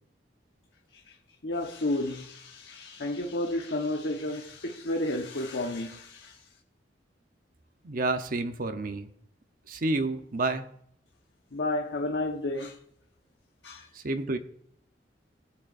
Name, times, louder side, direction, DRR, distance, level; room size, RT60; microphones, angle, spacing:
voice 1, 1.4-6.4 11.5-12.8 13.6-13.9, left 1 dB, 90° left, 1.1 m, -32 dB
voice 2, 7.8-9.1 9.7-10.6 13.9-14.4, right 2 dB, 55° right, 0.8 m, -29 dB
19.5 x 7.9 x 2.5 m
head